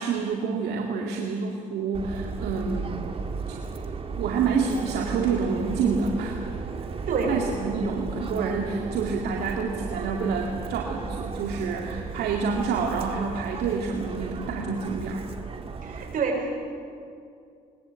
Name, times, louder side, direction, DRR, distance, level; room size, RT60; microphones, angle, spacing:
voice 1, 0.0-3.1 3.5-3.6 4.2-6.5 7.3-15.3, right 5 dB, 75° right, 0 dB, 2.2 m, -28 dB
Subway metro underground, 1.9-16.2, right 4 dB, 35° right, 2.0 m, -35 dB
voice 2, 15.8-16.7, right 4 dB, 55° right, 1 dB, 6.2 m, -27 dB
21.5 x 20.5 x 8.2 m, 2.4 s
cardioid pair, 110°, 17 cm